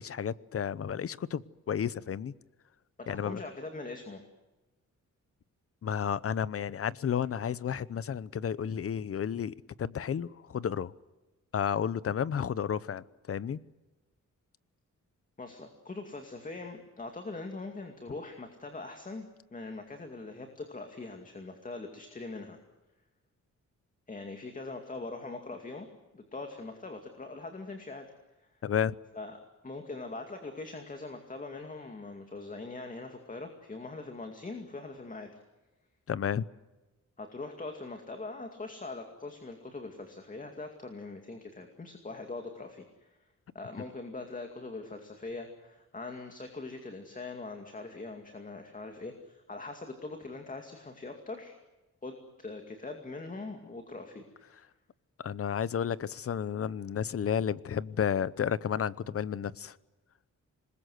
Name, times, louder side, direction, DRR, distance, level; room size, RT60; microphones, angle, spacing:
voice 1, 0.0-2.3 3.1-3.4 5.8-10.9 11.5-13.6 28.6-28.9 36.1-36.4 55.2-59.8, left 8 dB, 45° left, 0.8 m, -32 dB
voice 2, 3.0-4.2 15.4-22.6 24.1-25.9 26.1-28.1 29.1-29.4 29.6-35.4 37.2-43.1 43.5-51.5 52.0-54.6, left 3 dB, 25° left, 2.4 m, -42 dB
27.0 x 21.0 x 7.9 m
wide cardioid pair, 165°, 31 cm